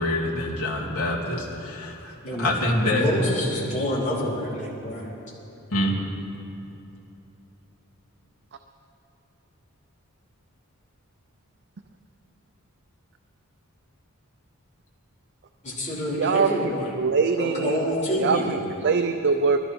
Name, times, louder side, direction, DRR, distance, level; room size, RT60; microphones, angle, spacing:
voice 1, 0.0-3.1 5.7-6.0, left 1 dB, 75° left, -4 dB, 2.8 m, -26 dB
voice 2, 2.8-5.1 15.6-17.0 17.4-18.5, equal, 35° left, -7 dB, 4.3 m, -27 dB
voice 3, 16.1-16.5 17.0-17.8 18.2-19.6, right 5 dB, 50° right, 7 dB, 0.5 m, -23 dB
21.0 x 13.5 x 4.5 m, 3.0 s
head